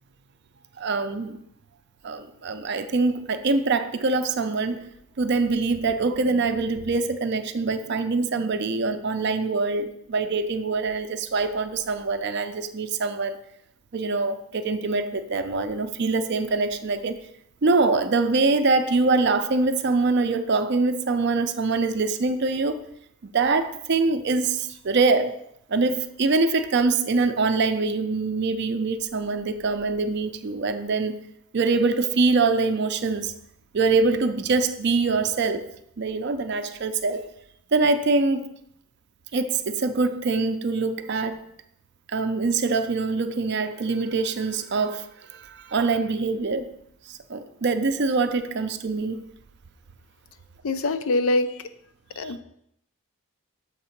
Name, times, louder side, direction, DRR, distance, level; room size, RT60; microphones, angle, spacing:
voice 1, 0.8-1.4 2.0-4.9 5.2-13.4 13.9-17.2 17.6-22.8 23.2-25.4 25.7-31.1 31.5-33.3 33.7-35.7 36.0-37.3 37.7-38.5 39.3-41.4 42.1-46.7 47.1-49.3 52.2-52.3, right 3 dB, 50° right, 0.5 m, -24 dB
voice 2, 50.6-51.7 52.2-52.4, left 2 dB, 65° left, 0.5 m, -24 dB
7.2 x 3.8 x 5.8 m
head